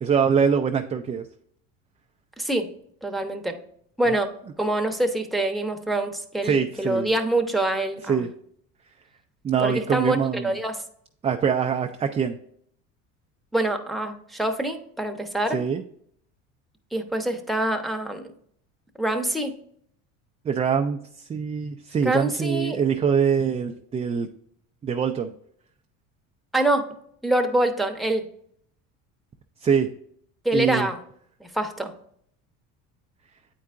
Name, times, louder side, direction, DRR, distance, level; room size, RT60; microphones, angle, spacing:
voice 1, 0.0-1.3 4.1-4.2 6.4-7.1 8.0-8.3 9.4-10.6 11.2-12.4 15.5-15.8 20.4-24.3 24.8-25.3 29.6-29.9 30.5-30.9, right 7 dB, 20° right, 4 dB, 0.3 m, -24 dB
voice 2, 3.0-3.6 4.0-4.3 4.6-8.2 9.6-10.7 13.5-15.6 16.9-18.3 19.0-19.5 22.0-22.8 26.5-26.8 27.2-28.2 30.4-31.0 31.4-31.9, right 1 dB, ahead, 3 dB, 0.8 m, -25 dB
8.4 x 4.6 x 2.5 m, 0.66 s
supercardioid pair, 90°, 39 cm